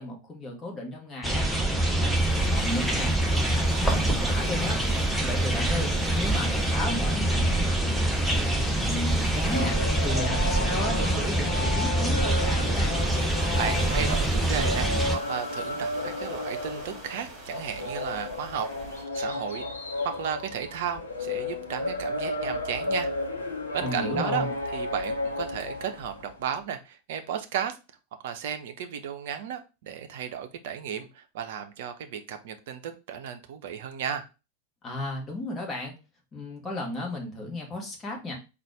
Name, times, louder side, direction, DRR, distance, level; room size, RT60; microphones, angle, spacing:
voice 1, 0.0-3.1 3.4-13.0 23.8-24.5 34.8-35.9 36.3-38.3, left 1 dB, 20° left, 0 dB, 1.3 m, -34 dB
sound 1, 1.2-15.1, right 1 dB, ahead, 0.8 m, -25 dB
sound 2, 2.1-19.0, right 3 dB, 25° right, 1.5 m, -44 dB
sound 3, 9.4-26.4, left 2 dB, 70° left, 0.9 m, -33 dB
voice 2, 13.5-14.9 15.3-18.7 19.1-19.7 20.0-23.1 23.7-24.5 24.7-27.8 28.2-34.3, right 8 dB, 55° right, 7 dB, 0.6 m, -34 dB
4.1 x 2.5 x 4.7 m, 0.29 s
figure-of-eight pair, 90°, 0 cm